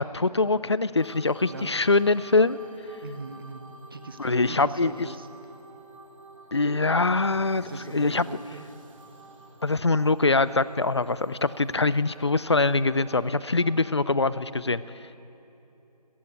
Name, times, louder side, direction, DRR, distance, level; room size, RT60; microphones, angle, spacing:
voice 1, 0.0-2.6 4.2-5.1 6.5-8.3 9.6-14.8, left 3 dB, 40° left, 17 dB, 0.5 m, -23 dB
sound 1, 1.0-14.3, right 3 dB, 50° right, 2.5 m, -50 dB
voice 2, 3.0-5.3 7.5-8.7, right 3 dB, 35° right, 10 dB, 1.0 m, -40 dB
26.5 x 15.0 x 8.4 m, 3.0 s
figure-of-eight pair, 170°, 21 cm